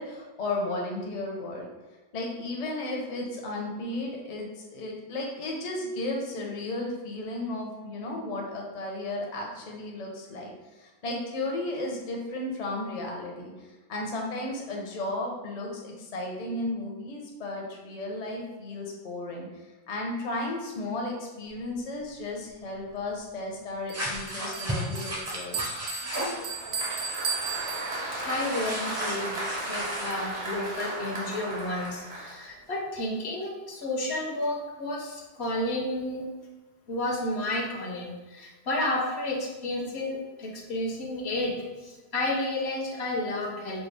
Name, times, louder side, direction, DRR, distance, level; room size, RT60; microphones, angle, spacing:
voice 1, 0.0-1.7 2.1-13.5 13.9-19.5 19.9-25.6, left 2 dB, 45° left, -1 dB, 0.7 m, -34 dB
sound 1, 23.9-26.5 28.3-30.1, equal, 15° right, 0.6 m, -34 dB
Bell, 23.9-28.4, right 5 dB, 70° right, 0.8 m, -35 dB
Applause, 25.7-32.8, right 1 dB, 45° right, 1.0 m, -35 dB
voice 2, 28.2-36.3 36.9-43.9, left 1 dB, 70° left, -1 dB, 1.0 m, -31 dB
4.6 x 2.3 x 3.2 m, 1.2 s
omnidirectional pair, 1.1 m